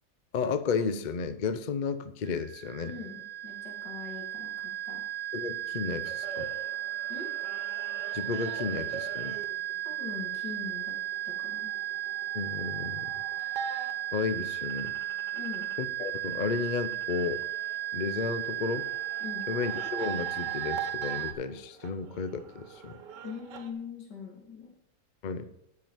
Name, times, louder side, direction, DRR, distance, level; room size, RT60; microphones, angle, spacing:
voice 1, 0.3-2.9 5.3-6.5 8.1-9.4 12.3-13.1 14.1-14.9 15.8-17.4 17.9-18.9 19.5-23.0 25.2-25.5, left 5 dB, 55° left, 12 dB, 0.5 m, -33 dB
sound 1, 2.3-21.3, right 13 dB, 50° right, 1.1 m, -35 dB
voice 2, 2.8-5.0 7.1-7.3 9.8-10.9 11.2-11.7 15.3-15.7 19.2-19.5 23.2-24.8, left 5 dB, 85° left, 0 dB, 3.2 m, -42 dB
sound 2, 6.0-15.8 16.2-23.7, right 7 dB, 80° right, 1.6 m, -44 dB
9.1 x 6.1 x 7.1 m, 0.86 s
omnidirectional pair, 1.8 m